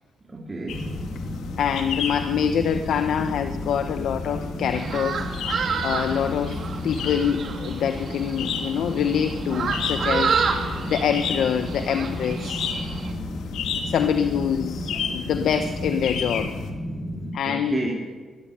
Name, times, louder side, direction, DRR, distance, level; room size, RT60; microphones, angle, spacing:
voice 1, 0.2-0.8 13.7-13.8 14.9-15.5 17.4-17.9, right 2 dB, 20° right, -1 dB, 3.2 m, -33 dB
sound 1, 0.7-16.7, left 6 dB, 85° left, 2.7 m, -33 dB
sound 2, 0.7-17.3, equal, 25° left, 2.9 m, -34 dB
voice 2, 1.6-5.2 5.8-6.6 6.8-10.4 10.9-12.6 13.8-16.5 17.3-17.8, left 8 dB, 65° left, 8 dB, 1.1 m, -25 dB
sound 3, 4.7-13.1, right 5 dB, 45° right, 2.7 m, -30 dB
21.5 x 13.5 x 9.8 m, 1.4 s
cardioid pair, 160°, 0 cm